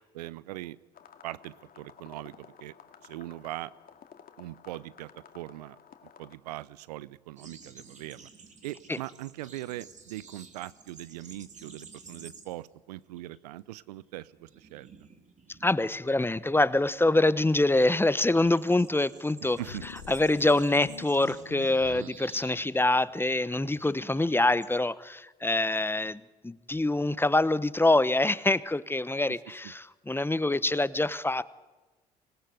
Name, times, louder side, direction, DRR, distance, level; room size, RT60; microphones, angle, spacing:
voice 1, 0.1-0.8 1.2-2.7 3.0-3.7 4.4-5.8 6.2-8.3 8.6-14.9 19.6-19.8 21.8-22.1, right 16 dB, 75° right, 20 dB, 0.7 m, -41 dB
sound 1, 0.9-6.4, left 7 dB, 45° left, 2.3 m, -54 dB
sound 2, 7.4-12.8 13.0-13.4 13.7-24.7, right 4 dB, 35° right, 3.7 m, -53 dB
voice 2, 15.6-19.6 20.1-31.4, left 2 dB, 10° left, 17 dB, 1.0 m, -25 dB
sound 3, 19.5-22.0, left 9 dB, 80° left, 1.8 m, -45 dB
25.5 x 19.0 x 8.0 m, 1.2 s
figure-of-eight pair, 50°, 21 cm